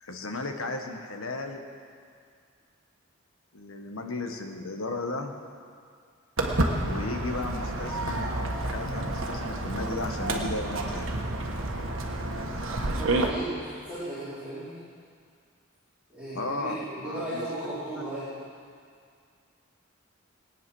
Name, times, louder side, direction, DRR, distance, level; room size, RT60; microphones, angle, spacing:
voice 1, 0.0-1.6 3.5-5.3 6.7-11.1 16.3-17.4, left 2 dB, 85° left, 4 dB, 1.5 m, -35 dB
Walk footsteps, 6.4-13.3, right 2 dB, 70° right, 1.4 m, -29 dB
voice 2, 13.0-14.8 16.1-18.4, right 1 dB, 5° right, -15 dB, 4.4 m, -36 dB
20.0 x 9.2 x 6.3 m, 2.2 s
head